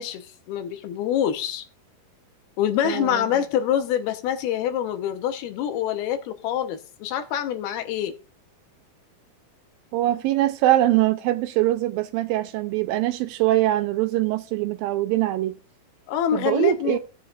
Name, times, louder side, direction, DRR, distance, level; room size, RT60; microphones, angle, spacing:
voice 1, 0.0-1.6 2.6-8.2 16.1-17.0, left 9 dB, 85° left, 2.9 m, -26 dB
voice 2, 2.8-3.3 9.9-15.6 16.3-17.0, right 15 dB, 80° right, 2.3 m, -23 dB
17.0 x 7.1 x 2.4 m
omnidirectional pair, 4.4 m